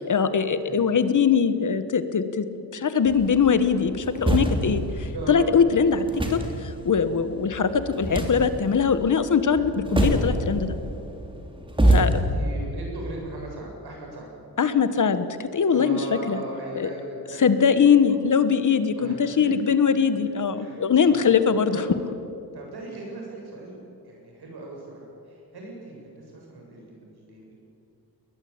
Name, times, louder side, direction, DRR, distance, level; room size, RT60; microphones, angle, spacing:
voice 1, 0.1-2.4 2.7-6.0 6.3-10.7 11.9-12.1 14.6-16.0 16.3-16.4 16.8-16.9 17.4-21.7, left 6 dB, 50° left, 12 dB, 1.3 m, -21 dB
sound 1, 3.1-12.2, right 1 dB, 15° right, 3.0 m, -27 dB
voice 2, 5.1-5.6 12.3-14.3 15.7-18.2 19.0-19.5 20.5-21.3 21.7-21.9 22.5-23.8 24.0-27.5, right 2 dB, 75° right, -1 dB, 7.7 m, -38 dB
21.0 x 20.5 x 8.8 m, 2.6 s
wide cardioid pair, 150°, 39 cm